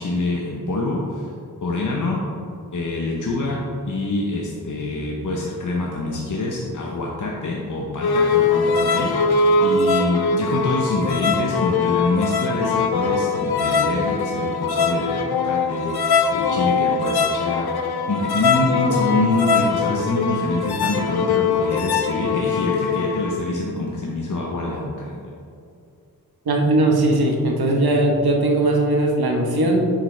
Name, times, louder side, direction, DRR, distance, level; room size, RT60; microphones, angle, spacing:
voice 1, 0.0-1.3 1.6-2.2 2.7-3.6 3.9-9.1 9.6-25.3, left 2 dB, 55° left, -2 dB, 0.9 m, -25 dB
sound 1, 8.0-23.4, left 4 dB, 85° left, 0.6 m, -21 dB
voice 2, 26.5-29.9, right 2 dB, 80° right, 1 dB, 1.1 m, -19 dB
7.5 x 6.7 x 3.3 m, 2.4 s
wide cardioid pair, 115°, 37 cm